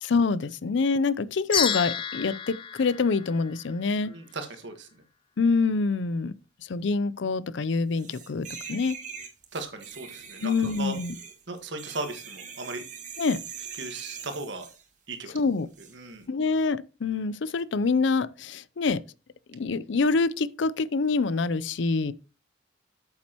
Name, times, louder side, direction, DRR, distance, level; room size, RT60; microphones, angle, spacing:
voice 1, 0.0-4.1 5.4-6.3 6.6-9.0 10.4-11.2 13.2-13.4 15.3-15.7 16.3-19.0 19.5-22.1, left 4 dB, 75° left, 0.5 m, -26 dB
Hand Bells Cluster, 1.5-4.0, left 7 dB, 25° left, 0.5 m, -31 dB
voice 2, 4.0-4.9 9.5-10.5 10.8-10.9 11.5-12.8 13.8-14.7 15.1-15.3 15.9-16.3, right 3 dB, 75° right, 1.5 m, -36 dB
sound 1, 8.0-14.8 15.7-15.9, right 6 dB, 40° right, 1.6 m, -42 dB
8.8 x 7.4 x 2.9 m
head